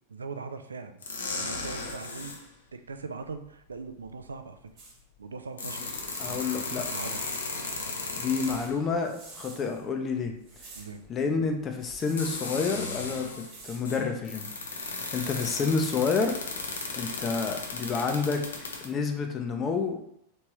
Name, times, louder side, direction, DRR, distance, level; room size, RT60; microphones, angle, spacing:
voice 1, 0.1-1.0 1.3-2.4 2.7-4.6 5.2-5.9 6.3-7.2 10.7-11.0, right 4 dB, 75° right, 8 dB, 0.3 m, -40 dB
sound 1, 1.0-2.4 4.0-4.1 5.3-8.9 11.0-11.1 12.0-13.5 13.8-18.8, left 3 dB, 70° left, 0.6 m, -36 dB
sound 2, 4.8-5.0 5.8-9.9 10.4-11.0 11.7-12.4 13.2-13.9 15.0-15.6 16.4-16.8, right 3 dB, 35° right, 1.4 m, -49 dB
voice 2, 6.2-6.8 8.2-10.4 11.1-13.3 13.6-14.5 15.1-16.4 16.9-20.0, left 5 dB, 25° left, 4 dB, 0.5 m, -29 dB
3.4 x 3.0 x 3.0 m, 0.75 s
figure-of-eight pair, 90°, 0 cm